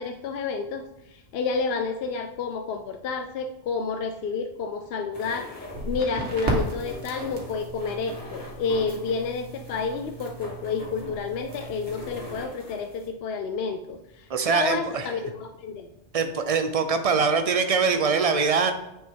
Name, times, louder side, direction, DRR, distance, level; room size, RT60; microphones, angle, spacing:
voice 1, 0.0-15.9, left 5 dB, 70° left, 6 dB, 0.7 m, -30 dB
sound 1, 5.1-13.1, left 1 dB, 30° left, 2.4 m, -42 dB
Crackle, 5.7-12.4, right 2 dB, 75° right, 1.8 m, -35 dB
voice 2, 14.3-15.1 16.1-18.7, right 5 dB, 40° right, 7 dB, 0.6 m, -23 dB
9.2 x 4.6 x 3.7 m, 0.90 s
omnidirectional pair, 1.2 m